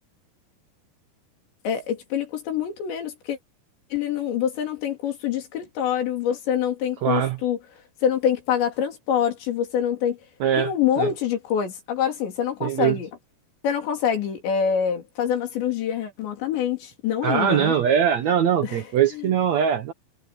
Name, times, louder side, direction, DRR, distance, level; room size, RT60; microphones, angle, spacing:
voice 1, 1.6-3.4 3.9-7.6 8.0-10.2 10.6-13.1 13.6-17.7 18.6-18.8 19.1-19.3, left 8 dB, 85° left, 5.7 m, -25 dB
voice 2, 7.0-7.4 10.4-10.7 11.0-11.1 12.6-13.0 17.2-19.9, right 9 dB, 85° right, 1.5 m, -21 dB
omnidirectional pair, 5.0 m